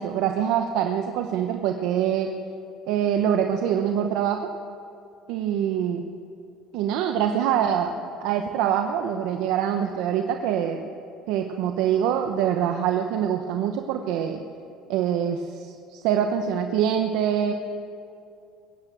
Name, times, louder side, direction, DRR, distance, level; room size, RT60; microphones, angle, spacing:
voice 1, 0.0-2.3 2.9-4.5 5.3-6.1 6.7-8.0 8.2-10.8 11.3-14.4 14.9-17.5, right 9 dB, 70° right, 4 dB, 0.9 m, -24 dB
21.0 x 9.1 x 7.5 m, 2.5 s
cardioid pair, 155°, 0 cm